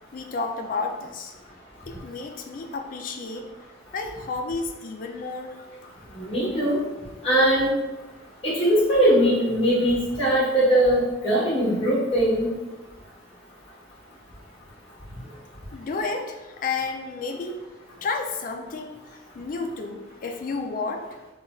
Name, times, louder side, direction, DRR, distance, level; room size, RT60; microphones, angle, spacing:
voice 1, 0.1-1.3 1.9-3.5 3.9-5.6 15.7-17.6 18.0-19.0 19.3-21.1, left 4 dB, 45° left, 5 dB, 0.3 m, -31 dB
voice 2, 6.1-6.8 7.2-7.7 8.4-12.5, right 1 dB, 30° left, -7 dB, 1.1 m, -21 dB
4.1 x 2.3 x 2.4 m, 1.1 s
head